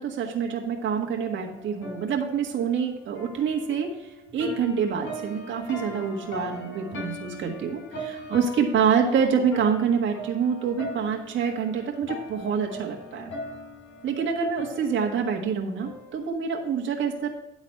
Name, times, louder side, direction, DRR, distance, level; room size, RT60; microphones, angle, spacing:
voice 1, 0.0-3.9 4.3-13.3 14.0-17.3, right 6 dB, 70° right, 0 dB, 1.7 m, -26 dB
sound 1, 1.4-16.3, left 1 dB, 75° left, 3.3 m, -40 dB
10.5 x 4.1 x 6.4 m, 0.90 s
cardioid pair, 90°, 20 cm